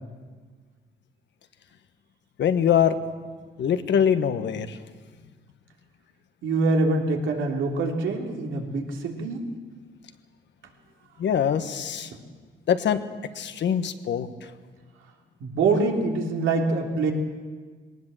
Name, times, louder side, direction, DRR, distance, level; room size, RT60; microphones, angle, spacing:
voice 1, 2.4-3.0 3.6-4.8 11.2-12.1 12.7-13.0 13.3-14.3, left 8 dB, 65° left, 9 dB, 1.4 m, -23 dB
voice 2, 6.4-9.4 12.1-12.2 15.4-17.1, right 3 dB, 75° right, 1 dB, 3.2 m, -25 dB
20.0 x 18.5 x 7.6 m, 1.5 s
cardioid pair, 90°, 20 cm